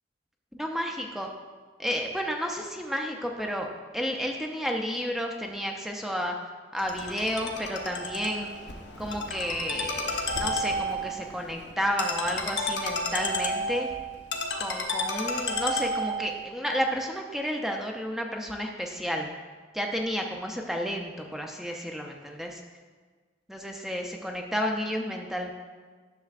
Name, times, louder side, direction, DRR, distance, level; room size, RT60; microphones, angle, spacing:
voice 1, 0.6-1.3 1.8-3.7 3.9-6.4 6.7-8.5 9.0-13.9 14.6-19.3 19.7-22.6 23.5-25.5, equal, ahead, 1 dB, 0.4 m, -31 dB
Ringtone, 6.8-16.3, left 1 dB, 75° left, 0.8 m, -32 dB
10.5 x 6.6 x 2.4 m, 1.5 s
head